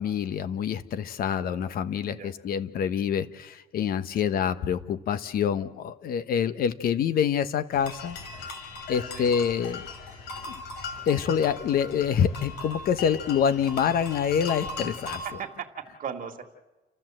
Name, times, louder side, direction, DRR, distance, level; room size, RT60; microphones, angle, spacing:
voice 1, 0.0-8.2 8.9-9.9 10.5-10.6 11.1-15.2, left 8 dB, 60° left, 12 dB, 1.2 m, -26 dB
sound 1, 7.7-15.3, left 3 dB, 80° left, 5.2 m, -38 dB
voice 2, 15.1-16.4, right 7 dB, 55° right, 4 dB, 2.1 m, -38 dB
30.0 x 13.5 x 7.7 m, 1.1 s
cardioid pair, 110°, 17 cm